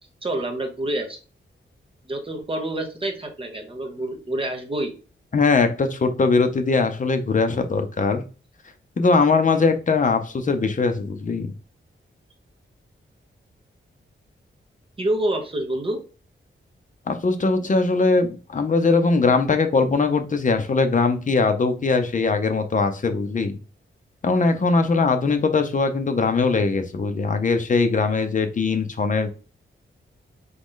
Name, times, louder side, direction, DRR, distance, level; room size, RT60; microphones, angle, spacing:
voice 1, 0.2-1.2 2.1-4.9 15.0-16.0, right 1 dB, 25° right, 3 dB, 0.9 m, -27 dB
voice 2, 5.3-8.2 9.0-11.5 17.1-23.6 24.2-29.3, left 4 dB, 40° left, 7 dB, 0.6 m, -21 dB
3.8 x 3.1 x 3.7 m, 0.35 s
wide cardioid pair, 150°, 21 cm